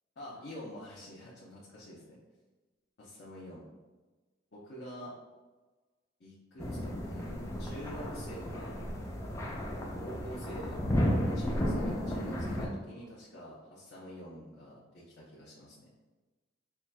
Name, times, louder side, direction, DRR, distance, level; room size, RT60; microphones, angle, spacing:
voice 1, 0.2-2.2 3.0-3.6 4.5-5.1 6.2-8.7 10.0-10.8 11.3-15.9, equal, 60° left, -7 dB, 0.7 m, -47 dB
sound 1, 6.6-12.7, equal, 15° left, 0.4 m, -33 dB
5.7 x 2.3 x 2.2 m, 1.3 s
head